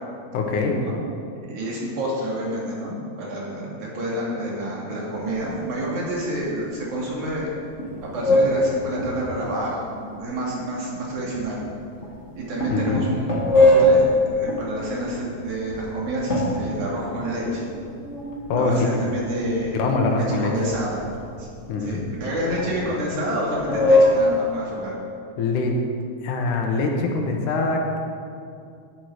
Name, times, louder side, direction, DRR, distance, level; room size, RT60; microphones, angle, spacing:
voice 1, 0.3-0.8 12.7-13.0 18.5-19.0 19.8-20.5 21.7-22.0 25.4-25.8 26.2-28.0, left 3 dB, 80° left, 2 dB, 2.7 m, -23 dB
voice 2, 1.4-7.5 8.0-11.6 12.3-13.3 13.6-17.6 18.6-19.8 20.1-21.1 21.4-21.5 21.8-24.9, right 1 dB, 70° right, -4 dB, 3.7 m, -28 dB
sound 1, 5.1-5.9 6.2-6.5 7.0-7.5 7.8-9.5 10.1-10.2 11.1-11.7 12.0-12.3 12.6-15.8 16.3-18.9 19.2-20.0 20.6-21.4 21.8-23.3 23.6-24.5, left 1 dB, 30° left, 1.6 m, -22 dB
11.5 x 10.5 x 4.8 m, 2.4 s
omnidirectional pair, 3.6 m